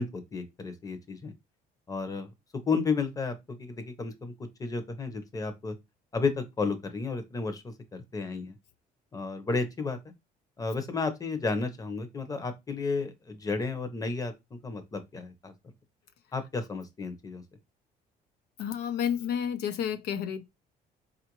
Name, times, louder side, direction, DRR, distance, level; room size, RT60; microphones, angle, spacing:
voice 1, 0.0-1.3 1.9-2.3 2.7-4.3 4.6-5.7 6.1-8.6 9.1-10.0 10.6-15.5 16.3-17.4, left 4 dB, 20° left, 0.8 m, -32 dB
voice 2, 18.6-20.5, left 8 dB, 75° left, 0.5 m, -30 dB
4.3 x 2.5 x 2.9 m
cardioid pair, 110°, 17 cm